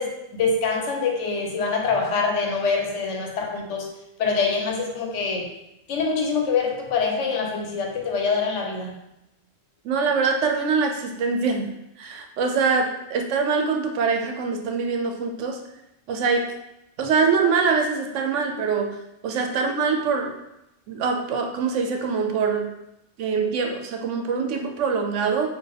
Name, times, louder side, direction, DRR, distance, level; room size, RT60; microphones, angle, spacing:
voice 1, 0.0-3.9 4.2-5.5 5.9-8.9, left 4 dB, 75° left, 2 dB, 1.0 m, -25 dB
voice 2, 9.8-11.7 12.0-15.6 16.1-16.5 17.0-19.0 19.2-20.3 20.9-22.7 23.2-25.5, right 5 dB, 85° right, 4 dB, 0.9 m, -24 dB
4.4 x 2.5 x 3.3 m, 0.87 s
omnidirectional pair, 1.2 m